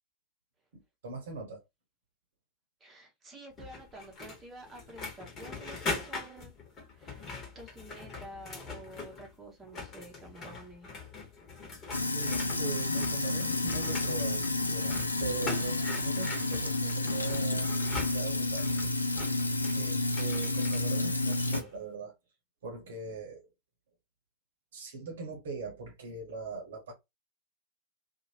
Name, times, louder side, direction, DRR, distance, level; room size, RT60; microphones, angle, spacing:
voice 1, 0.7-1.6 12.1-17.7 18.1-18.7 19.7-22.1 22.6-23.5 24.7-26.9, right 4 dB, 60° right, 1.0 m, -41 dB
voice 2, 2.8-6.5 6.9-7.2 7.5-10.9, right 1 dB, 20° right, 1.0 m, -49 dB
sound 1, 3.6-9.3 9.6-21.7, left 3 dB, 30° left, 1.3 m, -42 dB
Sink (filling or washing), 11.9-21.6, left 2 dB, 80° left, 0.4 m, -30 dB
2.8 x 2.5 x 2.7 m
figure-of-eight pair, 90°, 0 cm